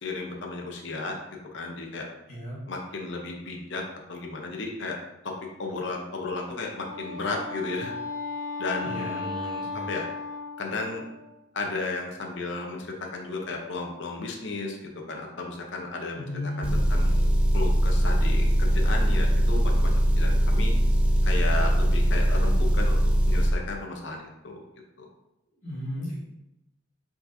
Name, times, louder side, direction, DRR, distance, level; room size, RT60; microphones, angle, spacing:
voice 1, 0.0-1.1 1.5-2.1 2.7-3.8 4.1-5.0 5.2-7.9 8.6-10.1 10.6-11.0 11.5-17.3 17.5-20.7 21.2-23.0 23.3-24.6 25.0-25.1, left 3 dB, 60° left, 1 dB, 0.6 m, -34 dB
Wind instrument woodwind instrument, 6.7-11.3, left 3 dB, 40° right, 1.2 m, -36 dB
voice 2, 8.8-9.8 16.1-16.8 25.6-26.1, left 1 dB, 35° left, -10 dB, 1.6 m, -35 dB
Motor vehicle (road) / Engine, 16.6-23.5, equal, 5° right, 0.3 m, -21 dB
4.7 x 4.1 x 2.5 m, 0.91 s
head